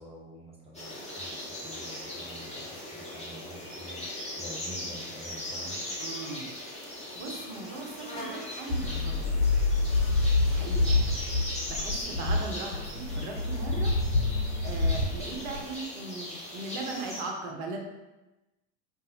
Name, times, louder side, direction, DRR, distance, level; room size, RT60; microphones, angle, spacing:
voice 1, 0.0-5.8 12.1-12.5, equal, 15° right, -4 dB, 1.0 m, -47 dB
sound 1, 0.7-17.2, left 1 dB, 15° left, 1.4 m, -39 dB
voice 2, 6.0-6.5 7.1-9.7 10.4-11.2 11.7-13.9 14.6-17.8, right 3 dB, 55° right, 1 dB, 1.0 m, -38 dB
sound 2, 8.7-15.6, left 2 dB, 70° left, 1.1 m, -27 dB
5.2 x 2.7 x 2.8 m, 1.1 s
hypercardioid pair, 70°, 43 cm